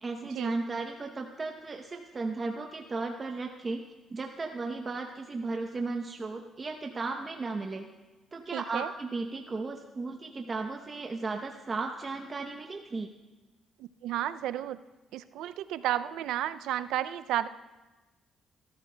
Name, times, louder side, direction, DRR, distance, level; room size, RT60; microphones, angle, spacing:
voice 1, 0.0-3.8 4.1-7.9 8.3-13.1, right 3 dB, 35° right, 3 dB, 0.8 m, -35 dB
voice 2, 8.5-8.9 13.8-14.8 15.1-17.5, right 12 dB, 90° right, 13 dB, 0.3 m, -32 dB
27.0 x 13.0 x 2.2 m, 1.2 s
cardioid pair, 90°, 0 cm